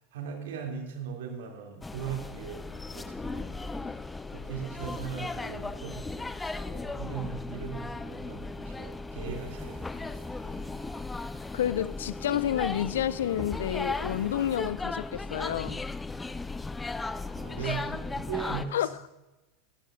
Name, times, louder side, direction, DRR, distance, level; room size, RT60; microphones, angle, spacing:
voice 1, 0.1-3.7 4.3-10.6 17.3-18.9, right 7 dB, 65° right, 2.6 m, -39 dB
sound 1, 1.8-18.7, left 3 dB, 10° left, 0.5 m, -36 dB
sound 2, 9.2-14.7, right 8 dB, 50° right, 1.4 m, -57 dB
voice 2, 11.5-15.8 17.6-17.9 18.7-18.9, left 11 dB, 65° left, 0.4 m, -30 dB
18.5 x 13.0 x 2.5 m
figure-of-eight pair, 80°, 0 cm